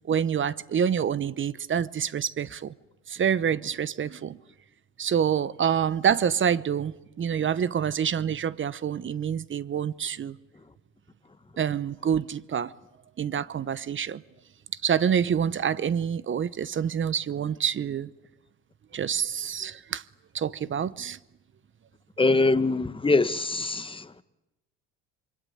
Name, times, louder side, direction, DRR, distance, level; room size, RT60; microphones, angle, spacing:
voice 1, 0.1-2.7 3.1-4.4 5.0-10.4 11.6-12.7 13.2-14.2 14.8-18.1 18.9-20.0 20.3-21.2, right 8 dB, 30° right, 0.9 m, -27 dB
voice 2, 22.2-24.2, left 3 dB, 15° left, 1.3 m, -23 dB
26.0 x 23.5 x 9.3 m
supercardioid pair, 95°, 37 cm